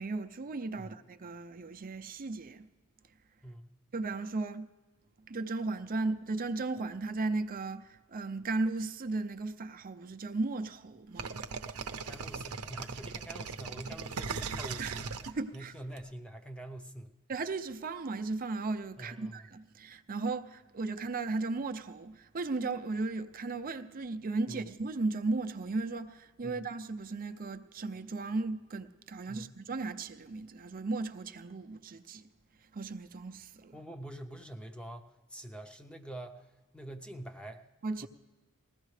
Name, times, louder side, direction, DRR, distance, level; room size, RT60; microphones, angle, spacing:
voice 1, 0.0-2.7 3.9-4.7 5.3-11.4 14.8-15.0 15.3-15.7 17.3-32.2 32.7-33.7 37.8-38.1, right 3 dB, 40° right, 0.6 m, -36 dB
sound 1, 11.2-16.0, right 5 dB, 75° right, 0.7 m, -38 dB
voice 2, 12.0-15.1 15.5-17.1 19.0-19.5 24.5-24.6 26.4-26.6 29.3-29.6 33.7-36.4 36.7-37.6 38.0-38.1, right 1 dB, 5° left, 0.7 m, -45 dB
20.0 x 15.0 x 3.3 m
head